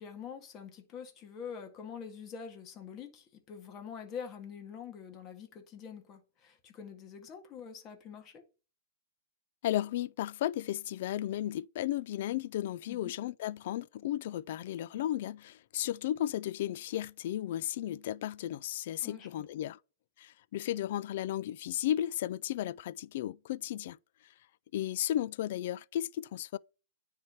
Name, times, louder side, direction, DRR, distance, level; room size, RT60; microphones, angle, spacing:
voice 1, 0.0-8.4 12.9-13.1 19.0-19.5, left 7 dB, 30° left, 1.7 m, -45 dB
voice 2, 9.6-19.8 20.2-24.0 24.7-26.6, left 12 dB, 55° left, 0.4 m, -34 dB
9.5 x 3.4 x 4.3 m
hypercardioid pair, 140°, 0 cm